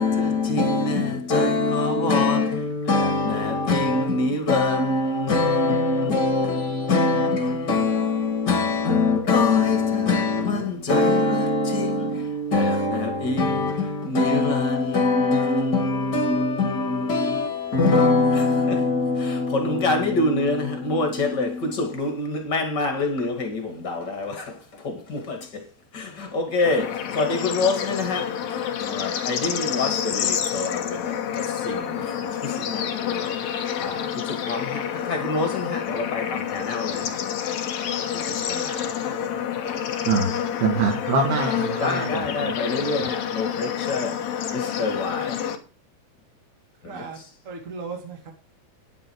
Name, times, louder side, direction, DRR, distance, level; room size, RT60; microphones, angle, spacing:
voice 1, 0.0-25.6 25.9-37.2 38.0-39.2 41.8-45.4 46.8-47.1, left 3 dB, 35° left, 1.7 m, -24 dB
Bird / Insect / Frog, 26.6-45.5, left 9 dB, 90° left, 1.5 m, -28 dB
voice 2, 40.1-42.5, right 4 dB, 60° right, 3.6 m, -24 dB
voice 3, 46.8-47.2 47.4-48.3, right 4 dB, 45° right, 1.0 m, -36 dB
10.0 x 9.9 x 4.8 m
omnidirectional pair, 5.4 m